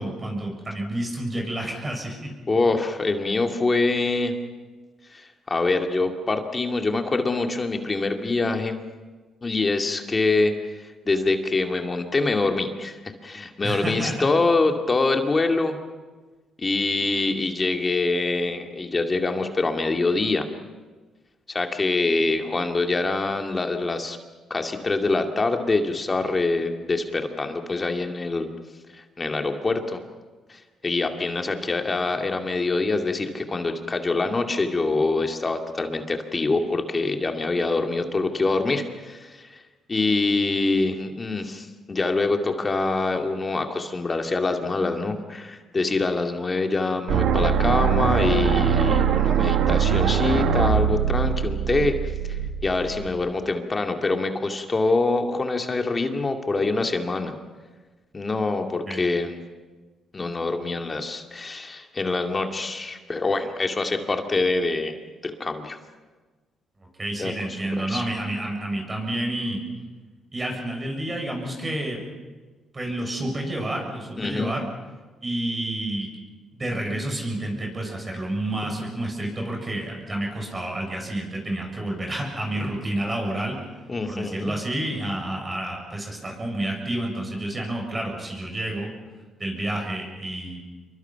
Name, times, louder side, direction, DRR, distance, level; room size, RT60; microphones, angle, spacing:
voice 1, 0.0-2.3 13.6-14.3 58.9-59.0 67.0-69.6 70.3-72.0 72.7-74.7 75.2-76.1 76.5-83.6 84.1-88.9 89.4-90.6, right 1 dB, 25° right, 1 dB, 7.2 m, -29 dB
voice 2, 2.5-4.4 5.1-8.8 9.4-15.8 16.6-20.5 21.5-24.2 24.5-28.5 28.9-30.0 30.5-39.6 39.9-51.9 52.3-57.3 58.1-59.4 60.1-65.0 65.2-65.8 67.2-68.0 74.2-74.5 83.9-84.5, left 3 dB, 30° left, 4 dB, 2.3 m, -25 dB
sound 1, 47.1-53.1, right 7 dB, 80° right, 2.0 m, -22 dB
27.5 x 23.5 x 5.8 m, 1.3 s
cardioid pair, 90°, 0 cm